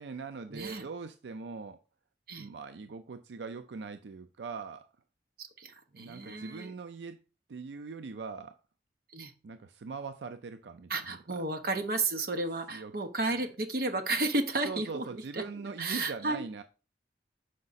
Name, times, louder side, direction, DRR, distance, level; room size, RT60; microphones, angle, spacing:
voice 1, 0.0-1.8 2.4-4.9 5.9-7.2 7.5-8.6 9.4-11.4 12.7-12.9 13.3-13.5 14.6-16.6, right 4 dB, 80° right, 0.4 m, -41 dB
voice 2, 0.5-0.9 2.3-2.5 5.4-6.7 9.1-9.3 10.9-16.4, right 2 dB, 55° right, 0.9 m, -33 dB
6.5 x 4.8 x 4.1 m
head